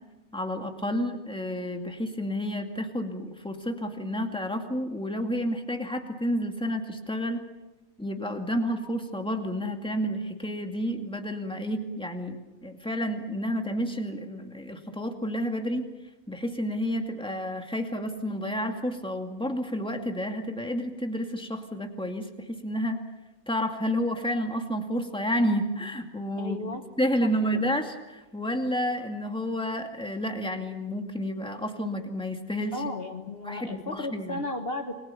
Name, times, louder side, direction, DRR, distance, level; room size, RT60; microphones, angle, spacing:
voice 1, 0.3-7.4 8.0-15.9 16.3-23.0 23.5-26.7 27.0-32.9 33.4-34.4, equal, 5° left, 4 dB, 2.2 m, -30 dB
voice 2, 26.4-26.8 27.5-27.6 32.7-34.9, left 2 dB, 45° left, 5 dB, 1.5 m, -34 dB
28.5 x 21.5 x 7.0 m, 1.1 s
omnidirectional pair, 1.5 m